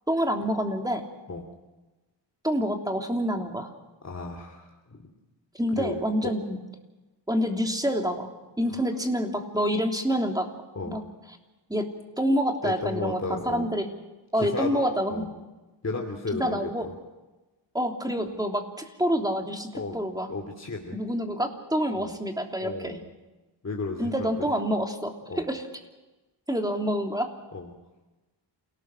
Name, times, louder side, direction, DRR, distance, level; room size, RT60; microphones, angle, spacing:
voice 1, 0.1-1.0 2.4-3.7 5.5-6.6 7.3-8.3 8.6-10.5 10.9-11.0 11.7-11.9 12.2-13.2 13.4-13.9 14.3-15.2 16.4-16.9 17.7-20.3 20.9-23.0 24.0-25.6 26.5-27.3, equal, 10° right, 3 dB, 3.2 m, -27 dB
voice 2, 4.0-5.1 5.8-6.3 8.7-8.8 10.7-11.0 12.6-13.7 14.3-14.8 15.1-15.3 15.8-16.9 19.7-20.0 20.3-21.0 21.9-22.1 22.6-23.1 23.6-24.3 25.3-25.4 27.5-27.7, left 3 dB, 35° left, 2 dB, 2.8 m, -34 dB
28.5 x 18.0 x 6.3 m, 1.1 s
wide cardioid pair, 85°, 45 cm